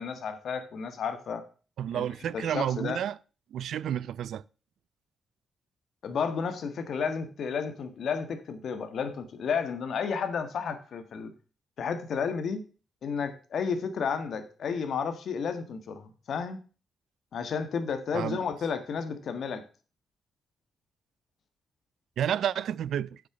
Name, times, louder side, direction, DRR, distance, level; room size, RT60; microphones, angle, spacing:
voice 1, 0.0-1.4 1.9-2.0 2.3-3.0 6.0-11.3 11.8-12.6 13.0-16.6 17.3-19.6, left 6 dB, 65° left, 1.6 m, -32 dB
voice 2, 1.8-3.2 3.5-4.4 18.1-18.4 22.2-23.2, right 10 dB, 80° right, 0.4 m, -30 dB
7.9 x 6.5 x 6.0 m
cardioid pair, 110°, 0 cm